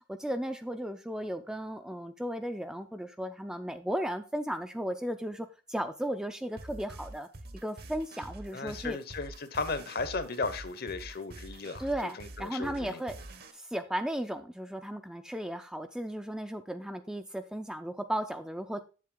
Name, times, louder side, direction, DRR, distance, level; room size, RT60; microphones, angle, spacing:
voice 1, 0.1-7.3 7.6-9.0 11.8-13.2 13.5-18.9, equal, 5° right, 7 dB, 0.4 m, -35 dB
sound 1, 6.6-13.5, right 2 dB, 50° right, 0.9 m, -46 dB
voice 2, 8.5-11.9 12.1-13.0, left 4 dB, 50° left, 12 dB, 0.8 m, -35 dB
7.9 x 7.4 x 3.7 m, 0.34 s
head